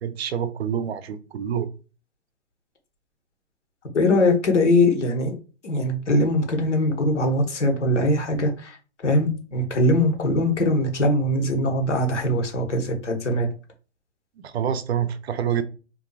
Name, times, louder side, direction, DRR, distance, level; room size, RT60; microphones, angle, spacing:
voice 1, 0.0-1.7 14.4-15.6, right 8 dB, 60° right, 0.5 m, -27 dB
voice 2, 3.9-5.3 5.6-8.8 9.0-13.5, left 1 dB, 80° left, 1.0 m, -21 dB
2.6 x 2.3 x 2.3 m
hypercardioid pair, 135°, 35 cm